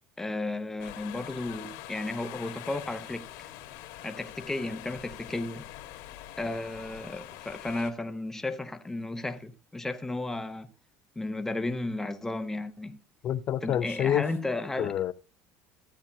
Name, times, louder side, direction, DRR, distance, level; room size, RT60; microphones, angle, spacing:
voice 1, 0.2-3.5 4.0-5.6 6.4-10.7 11.2-13.0 13.6-14.9, left 2 dB, 5° left, 0.8 m, -34 dB
sound 1, 0.8-7.9, left 14 dB, 75° left, 1.6 m, -44 dB
voice 2, 13.2-14.3 14.8-15.1, left 10 dB, 40° left, 0.6 m, -27 dB
14.5 x 8.8 x 2.7 m
cardioid pair, 145°, 6 cm